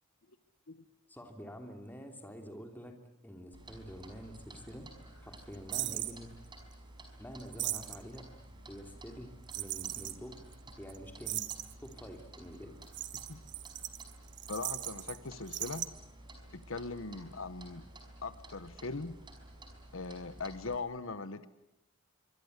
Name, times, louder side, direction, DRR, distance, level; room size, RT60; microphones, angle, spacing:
voice 1, 1.1-4.9 5.2-6.3 7.2-8.3 8.7-10.4 10.8-11.4 11.8-12.8, equal, 10° left, 4 dB, 3.0 m, -47 dB
Clock, 3.5-20.8, right 1 dB, 20° right, 5.3 m, -53 dB
sound 1, 5.7-6.2 7.4-8.2 9.5-10.2 10.5-10.6 10.9-11.0 11.2-11.9 12.8-15.2 15.4-15.9, right 14 dB, 55° right, 1.3 m, -38 dB
voice 2, 14.5-15.9 16.5-17.9 18.2-19.1 19.9-21.5, left 3 dB, 70° left, 13 dB, 1.1 m, -40 dB
26.0 x 24.5 x 8.1 m, 0.84 s
head